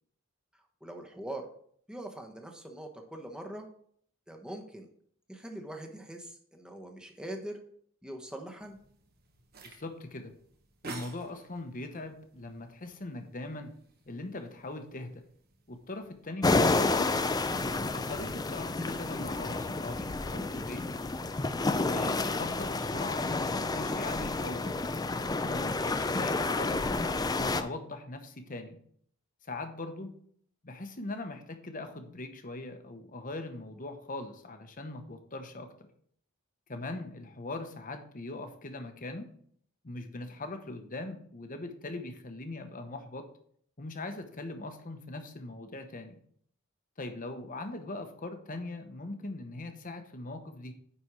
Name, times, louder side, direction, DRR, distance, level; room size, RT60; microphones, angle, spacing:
voice 1, 0.5-1.5 1.9-3.7 4.3-4.9 5.3-7.6 8.0-8.8, right 1 dB, 5° right, 3 dB, 1.0 m, -42 dB
sound 1, 8.6-16.4, right 2 dB, 45° right, 1.2 m, -52 dB
voice 2, 9.6-10.3 10.8-13.7 14.1-15.2 15.7-17.2 17.9-20.8 21.7-26.8 27.4-28.8 29.4-30.1 30.6-35.9 36.7-39.3 39.8-43.2 43.8-46.2 47.0-50.7, left 2 dB, 40° left, 6 dB, 1.0 m, -41 dB
sound 2, 16.4-27.6, left 3 dB, 20° left, 0.4 m, -30 dB
9.7 x 4.4 x 4.7 m, 0.62 s
head